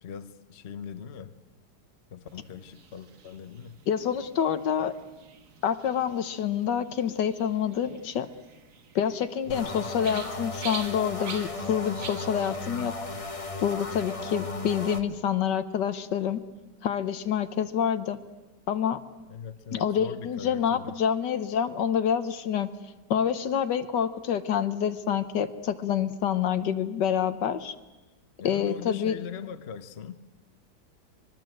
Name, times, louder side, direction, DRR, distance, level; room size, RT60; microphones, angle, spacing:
voice 1, 0.0-1.3 2.1-3.8 9.5-9.9 19.3-21.0 28.4-30.2, left 7 dB, 45° left, 1.1 m, -40 dB
sound 1, 2.3-12.5, right 5 dB, 50° right, 1.6 m, -46 dB
voice 2, 3.9-4.9 5.6-8.3 8.9-13.0 13.6-16.4 16.8-18.2 18.7-19.0 19.7-22.7 23.1-27.7 28.4-29.1, left 8 dB, 80° left, 1.6 m, -27 dB
sound 2, 9.5-15.0, left 3 dB, 20° left, 1.2 m, -35 dB
25.0 x 21.0 x 7.8 m
omnidirectional pair, 1.8 m